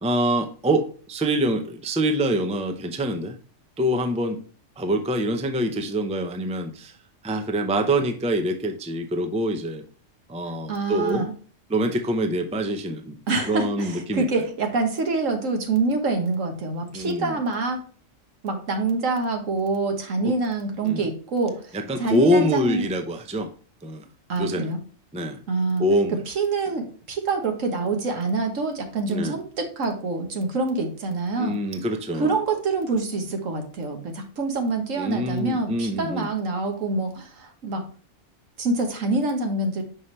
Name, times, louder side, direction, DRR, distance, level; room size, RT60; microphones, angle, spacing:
voice 1, 0.0-3.4 3.8-4.4 4.8-6.9 7.2-9.8 10.3-11.2 11.7-13.2 13.4-14.3 16.9-17.4 20.2-20.3 20.8-21.1 21.7-23.5 23.8-24.1 24.4-24.7 25.1-25.4 25.8-26.2 29.1-29.4 31.4-32.3 35.0-36.3, right 1 dB, 10° right, 6 dB, 0.4 m, -25 dB
voice 2, 10.7-11.3 13.3-17.8 18.4-22.8 24.3-24.8 25.5-25.8 26.3-31.6 32.1-37.8 38.6-39.8, right 3 dB, 80° right, 5 dB, 1.6 m, -26 dB
5.7 x 5.5 x 3.2 m, 0.41 s
omnidirectional pair, 1.3 m